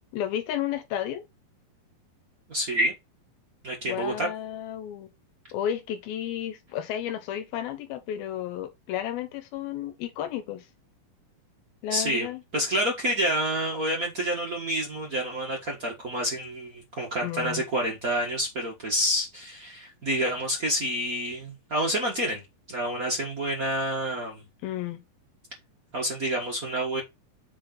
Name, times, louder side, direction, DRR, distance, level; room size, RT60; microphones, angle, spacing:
voice 1, 0.1-1.2 3.9-5.1 5.5-10.7 11.8-12.4 17.2-17.6 24.6-25.0, left 10 dB, 85° left, 2.8 m, -32 dB
voice 2, 2.5-2.9 3.6-4.3 11.9-12.3 12.5-22.4 22.7-24.4 25.9-27.0, equal, 65° right, 0.8 m, -28 dB
7.4 x 4.0 x 3.9 m
omnidirectional pair, 4.3 m